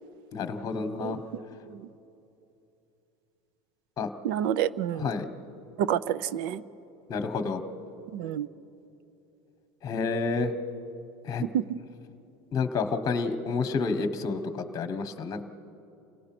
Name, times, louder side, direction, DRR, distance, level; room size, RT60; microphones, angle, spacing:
voice 1, 0.3-1.2 4.0-4.1 5.0-5.3 7.1-7.6 9.8-10.5 11.3-11.5 12.5-15.4, left 4 dB, 30° left, 9 dB, 1.1 m, -29 dB
voice 2, 4.2-5.1 5.8-6.6 8.1-8.5 11.5-11.6, right 10 dB, 75° right, 16 dB, 0.7 m, -28 dB
28.5 x 17.5 x 6.0 m, 2.8 s
supercardioid pair, 140°, 12 cm